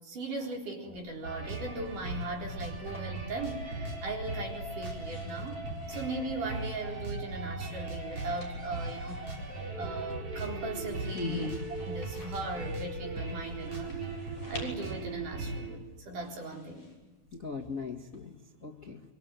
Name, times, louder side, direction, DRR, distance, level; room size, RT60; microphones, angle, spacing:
voice 1, 0.0-5.6 5.9-9.2 9.8-11.5 11.9-14.0 14.5-16.9, right 2 dB, 60° right, 1 dB, 5.5 m, -38 dB
sound 1, 0.9-18.2, left 2 dB, 50° left, 7.7 m, -55 dB
sound 2, 1.2-15.8, right 2 dB, 40° right, 5.2 m, -38 dB
voice 2, 11.1-11.5 17.3-19.0, left 3 dB, 30° left, 2 dB, 1.6 m, -38 dB
25.5 x 24.5 x 9.2 m, 1.2 s
omnidirectional pair, 4.1 m